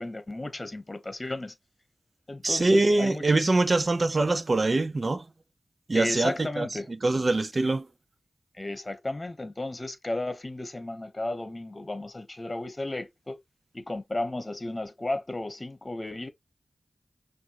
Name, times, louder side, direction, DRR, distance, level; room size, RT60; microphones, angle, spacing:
voice 1, 0.0-1.5 2.3-3.5 5.9-6.9 8.5-13.4 13.7-16.3, left 2 dB, 35° left, 1.0 m, -34 dB
voice 2, 2.4-5.2 5.9-7.9, right 2 dB, 50° right, 0.7 m, -24 dB
6.1 x 2.6 x 3.0 m
wide cardioid pair, 65°, 0 cm